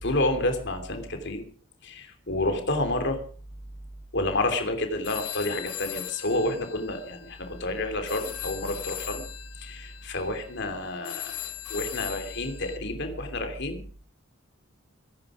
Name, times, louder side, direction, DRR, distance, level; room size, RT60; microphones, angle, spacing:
voice 1, 0.0-1.4 1.8-3.2 4.1-9.2 9.6-11.4 11.7-13.8, left 2 dB, 50° left, 7 dB, 3.1 m, -29 dB
sound 1, 5.0-12.8, left 13 dB, 85° left, 1.4 m, -39 dB
24.0 x 11.5 x 4.9 m, 0.43 s
head